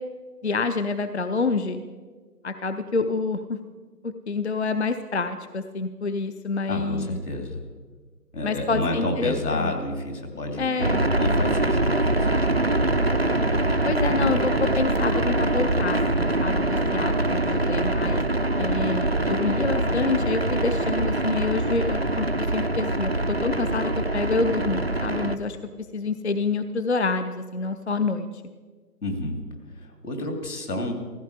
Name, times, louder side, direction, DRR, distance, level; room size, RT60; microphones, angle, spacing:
voice 1, 0.4-1.8 2.4-3.6 4.0-7.2 8.4-9.7 10.6-11.1 13.8-18.2 18.6-28.4, left 4 dB, 45° left, 10 dB, 0.6 m, -27 dB
voice 2, 6.7-7.6 8.3-10.7 11.1-12.7 29.0-29.4 29.7-30.9, left 1 dB, 70° left, 4 dB, 3.0 m, -30 dB
sound 1, 10.8-25.4, right 2 dB, 40° right, 0.4 m, -24 dB
15.0 x 14.5 x 4.9 m, 1.5 s
figure-of-eight pair, 155°, 48 cm